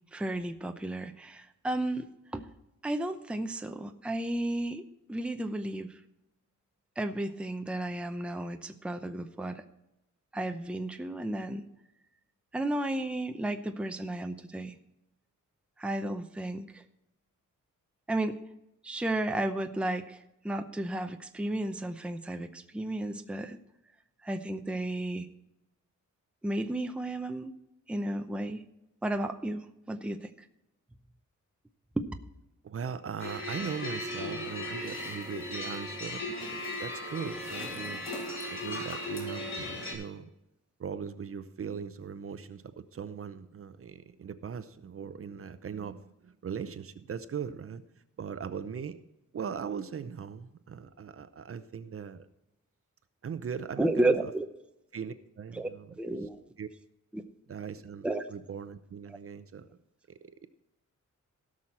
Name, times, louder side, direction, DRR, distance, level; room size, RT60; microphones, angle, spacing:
voice 1, 0.1-2.5 2.8-6.0 7.0-9.6 10.3-11.6 12.5-14.8 15.8-16.8 18.1-18.4 18.8-20.2 20.4-23.6 24.2-25.3 26.4-27.5 27.9-28.6 29.0-30.3 32.0-32.1 53.8-54.5 55.5-55.7 56.0-56.4 57.1-57.2 58.0-58.2 59.1-59.2, right 1 dB, 5° right, 7 dB, 0.6 m, -33 dB
voice 2, 32.6-38.0 38.5-40.3 40.8-47.8 48.2-49.0 49.3-52.3 53.2-54.3 54.9-55.9 56.6-56.7 57.5-59.7 60.1-60.5, right 7 dB, 45° right, 12 dB, 0.7 m, -39 dB
sound 1, 33.2-39.9, left 1 dB, 40° left, 3.5 m, -37 dB
16.5 x 6.3 x 4.3 m, 0.89 s
wide cardioid pair, 150°, 31 cm